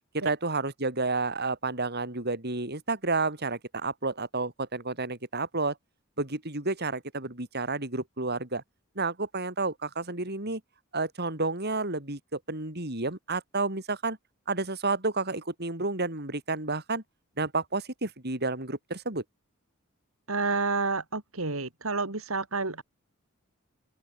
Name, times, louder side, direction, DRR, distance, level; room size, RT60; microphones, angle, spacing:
voice 1, 0.1-5.8 6.2-8.6 9.0-10.6 10.9-14.2 14.5-17.0 17.4-19.2, right 3 dB, 50° right, 5.5 m, -30 dB
voice 2, 20.3-22.8, right 3 dB, 90° right, 3.5 m, -29 dB
open air
head